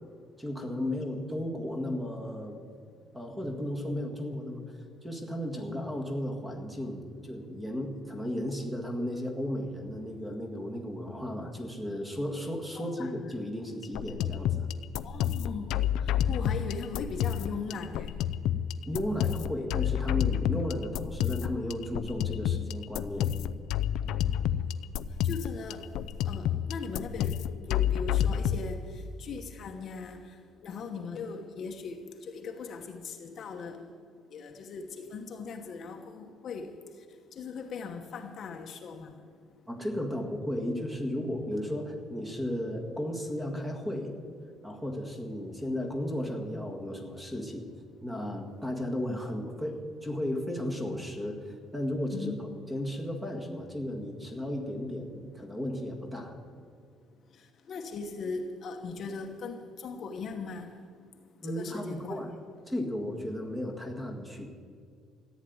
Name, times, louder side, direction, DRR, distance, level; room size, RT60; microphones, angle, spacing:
voice 1, 0.4-2.7 3.1-4.6 5.0-14.7 18.9-23.3 39.7-44.1 44.6-47.6 48.0-56.4 61.4-62.3 62.7-64.5, left 1 dB, 5° right, 3 dB, 1.7 m, -34 dB
voice 2, 12.8-13.3 15.0-15.7 16.0-18.2 25.2-25.9 26.2-27.4 27.7-30.3 30.6-33.8 34.3-36.7 37.4-39.1 52.1-52.4 57.7-60.8 61.4-62.3, left 5 dB, 40° left, 4 dB, 1.1 m, -39 dB
sound 1, 13.8-28.6, left 10 dB, 75° left, 0.5 m, -30 dB
14.5 x 9.4 x 9.4 m, 2.2 s
cardioid pair, 170°, 0 cm